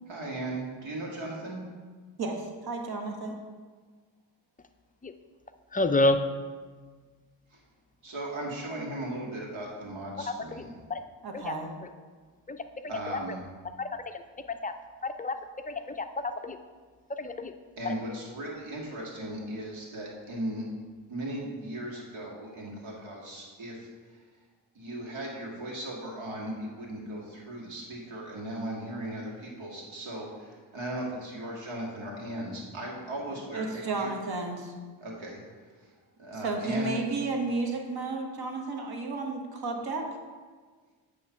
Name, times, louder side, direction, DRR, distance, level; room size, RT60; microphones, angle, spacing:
voice 1, 0.1-1.6 7.5-7.6 8.0-10.7 12.9-13.4 17.8-20.6 21.1-23.8 24.8-34.1 35.0-35.4 36.2-37.0, right 1 dB, 75° right, -3 dB, 2.0 m, -37 dB
voice 2, 2.2-3.4 11.2-11.7 33.3-34.7 36.3-40.0, right 3 dB, 50° right, 3 dB, 1.3 m, -32 dB
voice 3, 5.7-6.3 10.3-10.6 10.9-11.0 11.3-11.6 12.5-13.4 13.8-14.7 15.0-16.6 17.1-17.5 17.8-18.0, left 2 dB, 20° left, 8 dB, 0.4 m, -30 dB
8.5 x 3.2 x 5.8 m, 1.5 s
cardioid pair, 60°, 47 cm